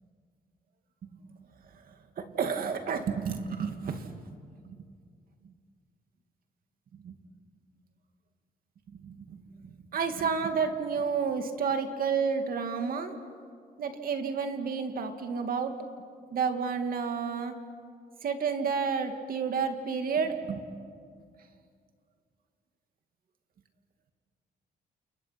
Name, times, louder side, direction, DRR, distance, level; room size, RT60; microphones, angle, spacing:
voice 1, 1.7-4.1 4.7-4.8 5.4-5.5 6.9-7.2 8.9-13.1 13.8-15.7 16.3-17.5 18.2-20.6, right 6 dB, 60° right, 6 dB, 2.3 m, -31 dB
30.0 x 29.0 x 6.0 m, 2.2 s
cardioid pair, 135°, 16 cm